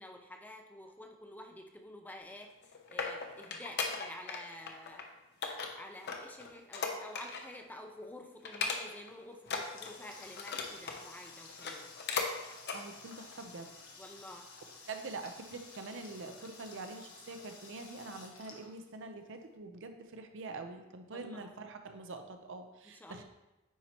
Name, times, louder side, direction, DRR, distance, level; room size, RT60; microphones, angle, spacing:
voice 1, 0.0-2.5 2.9-5.0 5.7-11.9 14.0-14.5 21.1-21.5 22.9-23.2, left 1 dB, 10° left, 3 dB, 0.5 m, -50 dB
sound 1, 2.4-4.4 4.7-5.0 5.4-7.6 7.9-8.1 8.4-9.1 9.4-11.0 11.5-12.3 12.6-12.8 13.3-13.4, left 4 dB, 55° left, 0.7 m, -37 dB
Water tap faucet, 9.2-19.4, left 4 dB, 85° left, 1.1 m, -53 dB
voice 2, 12.7-13.7 14.9-23.2, right 3 dB, 60° right, 6 dB, 0.6 m, -45 dB
9.3 x 4.3 x 2.9 m, 1.0 s
head